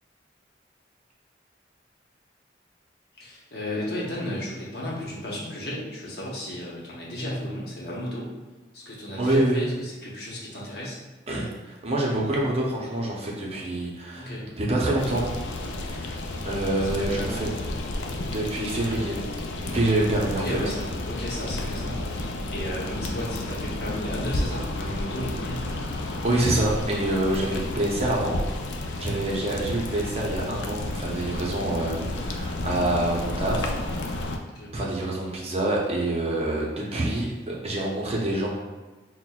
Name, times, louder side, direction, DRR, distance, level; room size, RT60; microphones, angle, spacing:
voice 1, 3.2-8.3 8.7-11.0 14.1-14.4 16.8-17.5 20.4-25.6 27.4-27.7 34.4-34.7, left 1 dB, 60° left, -5 dB, 0.9 m, -34 dB
voice 2, 9.2-9.7 11.3-15.3 15.9-16.1 16.4-17.5 18.3-19.2 19.6-20.4 25.7-28.4 29.0-34.3 34.7-38.5, right 1 dB, 35° right, -3 dB, 0.6 m, -26 dB
sound 1, 15.0-34.4, left 2 dB, 85° left, 0.4 m, -32 dB
5.8 x 2.1 x 2.3 m, 1.3 s
head